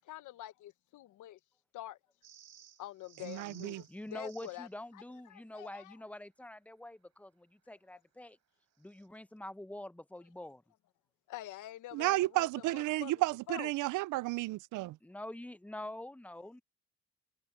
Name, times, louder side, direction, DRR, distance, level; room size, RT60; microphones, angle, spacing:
voice 1, 0.0-1.4 1.7-2.0 2.8-4.7 4.9-5.9 11.3-12.5 12.7-13.1 13.5-13.7, left 15 dB, 80° left, 1.0 m, -46 dB
sound 1, 2.2-4.7 8.8-9.1, right 9 dB, 60° right, 5.7 m, -58 dB
voice 2, 3.2-3.8 11.9-15.0, right 19 dB, 85° right, 0.5 m, -32 dB
voice 3, 3.9-8.4 8.8-10.6 15.0-16.6, left 1 dB, 5° left, 0.8 m, -46 dB
cardioid pair, 90°, 30 cm